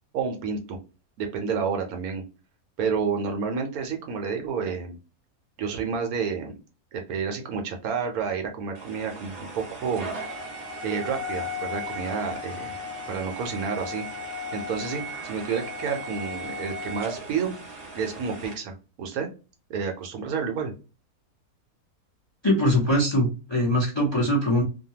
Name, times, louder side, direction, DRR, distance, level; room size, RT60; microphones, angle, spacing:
voice 1, 0.1-0.8 1.2-2.2 2.8-5.0 5.6-6.6 6.9-10.1 10.8-12.8 13.1-14.0 14.5-17.5 17.9-19.3 19.7-20.7, right 6 dB, 75° right, 4 dB, 1.1 m, -30 dB
sound 1, 8.8-18.5, left 1 dB, 45° right, 0.9 m, -36 dB
voice 2, 22.4-24.6, equal, 25° left, -3 dB, 0.6 m, -22 dB
2.7 x 2.2 x 2.8 m, 0.32 s
omnidirectional pair, 1.7 m